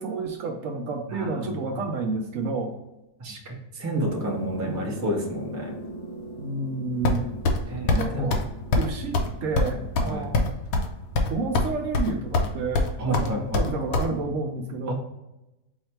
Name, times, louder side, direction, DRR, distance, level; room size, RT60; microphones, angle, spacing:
voice 1, 0.0-2.8 4.6-4.9 6.4-7.4 7.9-8.4 8.8-10.5 11.1-14.9, right 3 dB, 65° right, 3 dB, 0.8 m, -30 dB
voice 2, 1.1-1.7 3.2-5.7 7.7-8.4 10.1-10.3 13.0-13.6 14.9-15.0, right 1 dB, 25° right, -1 dB, 0.3 m, -30 dB
sound 1, 4.0-11.2, right 1 dB, 45° left, 0.4 m, -40 dB
sound 2, 7.0-7.6 7.9-8.0 8.3-8.5 8.7-8.9 9.1-9.3 9.6-10.9 11.1-11.7 11.9-12.5 12.7-14.1, left 3 dB, 70° left, 1.0 m, -22 dB
4.7 x 2.2 x 4.2 m, 0.96 s
omnidirectional pair, 1.7 m